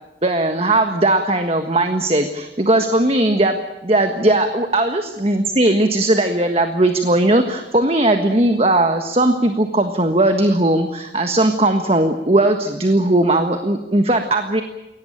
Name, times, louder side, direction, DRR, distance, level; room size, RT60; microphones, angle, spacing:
voice 1, 0.2-14.6, right 1 dB, 35° right, 7 dB, 1.5 m, -18 dB
23.0 x 18.0 x 9.0 m, 0.98 s
head